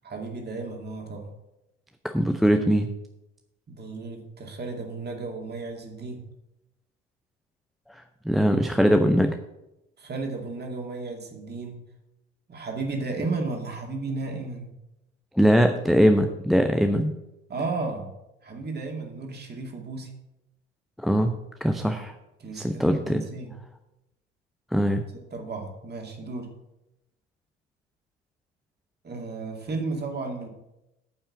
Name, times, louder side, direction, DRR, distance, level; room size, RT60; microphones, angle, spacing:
voice 1, 0.0-1.3 3.7-6.2 10.0-11.8 12.5-14.7 17.5-18.1 18.4-20.1 22.4-23.5 25.3-26.5 29.0-30.5, right 3 dB, 30° right, 2 dB, 2.3 m, -33 dB
voice 2, 2.0-2.9 8.2-9.3 15.3-17.1 21.0-22.1 22.5-23.2 24.7-25.0, equal, ahead, 5 dB, 0.6 m, -21 dB
9.1 x 5.6 x 7.1 m, 0.92 s
figure-of-eight pair, 60°, 35 cm